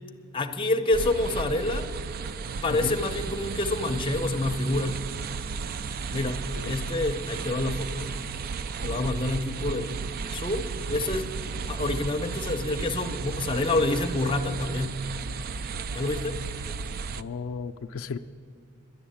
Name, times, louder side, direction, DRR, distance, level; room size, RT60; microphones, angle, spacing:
voice 1, 0.3-1.9 2.5-5.0 6.1-8.2 8.8-10.0 10.3-11.3 11.7-15.0 15.9-16.4, left 2 dB, 25° left, 5 dB, 0.6 m, -28 dB
sound 1, 0.9-17.2, right 5 dB, 45° right, 0.3 m, -34 dB
voice 2, 2.7-3.0 6.6-6.9 8.8-9.2 17.2-18.2, left 5 dB, 75° left, 6 dB, 0.4 m, -36 dB
11.0 x 10.0 x 8.6 m, 2.2 s
head